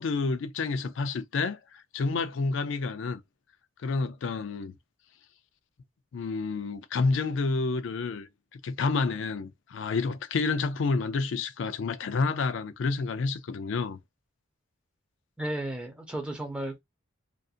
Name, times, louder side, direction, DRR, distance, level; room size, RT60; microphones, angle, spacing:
voice 1, 0.0-3.2 3.8-4.7 6.1-14.0, left 4 dB, 60° left, 0.4 m, -29 dB
voice 2, 15.4-16.8, right 1 dB, 5° right, 0.8 m, -34 dB
2.6 x 2.4 x 2.4 m
head